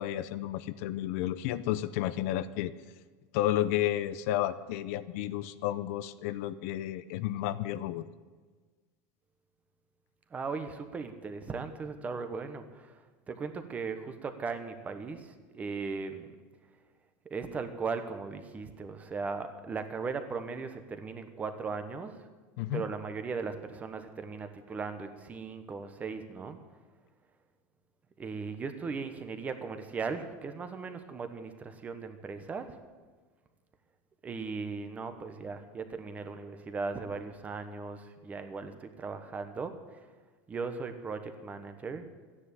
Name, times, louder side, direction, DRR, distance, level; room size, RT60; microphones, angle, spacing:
voice 1, 0.0-2.7 3.3-8.0 22.6-22.8, left 13 dB, 60° left, 14 dB, 0.7 m, -32 dB
voice 2, 10.3-13.0 13.3-16.3 17.3-22.2 22.7-26.6 28.2-32.8 34.2-40.0 40.5-42.0, right 4 dB, 15° right, 8 dB, 1.1 m, -38 dB
13.5 x 10.0 x 8.4 m, 1.4 s
supercardioid pair, 165°, 9 cm